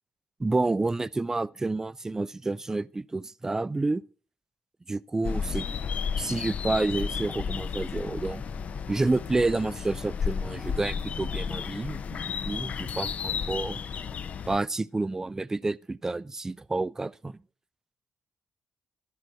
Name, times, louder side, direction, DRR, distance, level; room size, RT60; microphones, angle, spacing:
voice 1, 0.4-4.0 4.9-5.7 6.2-8.4 8.9-13.8 14.5-17.4, right 3 dB, 20° right, 0.4 m, -29 dB
sound 1, 5.2-14.6, left 6 dB, 55° left, 0.6 m, -33 dB
11.5 x 6.1 x 6.3 m
cardioid pair, 110°, 3 cm